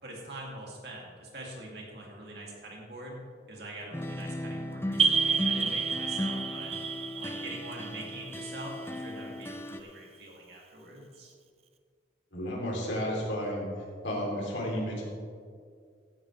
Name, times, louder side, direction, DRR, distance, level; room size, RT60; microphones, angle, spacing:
voice 1, 0.0-6.7 7.1-11.3, right 1 dB, 55° right, -2 dB, 2.7 m, -44 dB
sound 1, 3.9-9.8, left 1 dB, 10° left, 0.5 m, -36 dB
sound 2, 5.0-9.4, right 5 dB, 30° right, 0.7 m, -30 dB
voice 2, 12.3-13.7 14.0-15.0, equal, 75° left, -2 dB, 3.2 m, -32 dB
15.5 x 11.0 x 3.4 m, 2.1 s
head